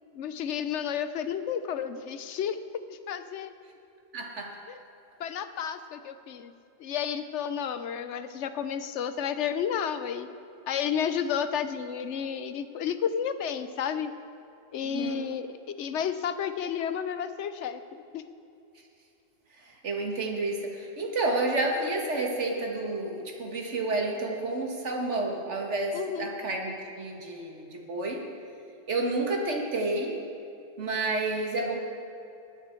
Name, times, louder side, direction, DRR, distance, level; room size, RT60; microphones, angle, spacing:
voice 1, 0.1-2.6 2.9-3.5 4.7-4.8 5.2-6.5 6.8-10.3 10.7-14.1 14.7-18.2 25.9-26.3, left 8 dB, 85° left, 11 dB, 1.0 m, -31 dB
voice 2, 4.1-4.5 14.8-15.2 19.6-28.2 28.9-30.2 30.8-31.8, right 2 dB, 90° right, 0 dB, 1.9 m, -30 dB
19.5 x 8.8 x 4.5 m, 2.7 s
omnidirectional pair, 1.2 m